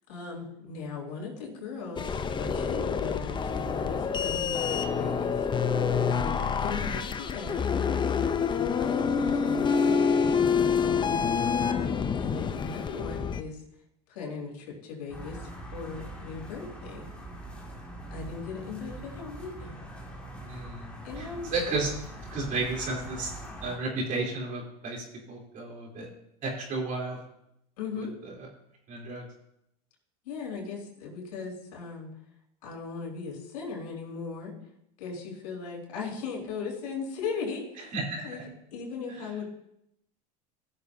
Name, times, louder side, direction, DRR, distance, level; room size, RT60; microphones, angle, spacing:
voice 1, 0.1-5.3 6.1-10.1 10.8-11.3 11.7-13.6 14.1-17.1 18.1-19.7 21.0-21.5 27.8-28.1 30.2-32.1 32.6-34.5 35.0-37.9 38.2-38.4 38.7-39.4, left 5 dB, 75° left, -1 dB, 4.1 m, -38 dB
sound 1, 2.0-13.4, left 6 dB, 25° left, 0.6 m, -27 dB
sound 2, 15.1-23.8, right 1 dB, 5° left, 2.2 m, -42 dB
voice 2, 20.4-20.9 21.2-21.9 22.3-23.3 23.6-26.1 26.4-27.2 28.0-28.5 28.9-29.2 37.9-38.4, right 3 dB, 40° right, -2 dB, 3.5 m, -33 dB
18.0 x 6.7 x 2.7 m, 0.79 s
hypercardioid pair, 100°, 20 cm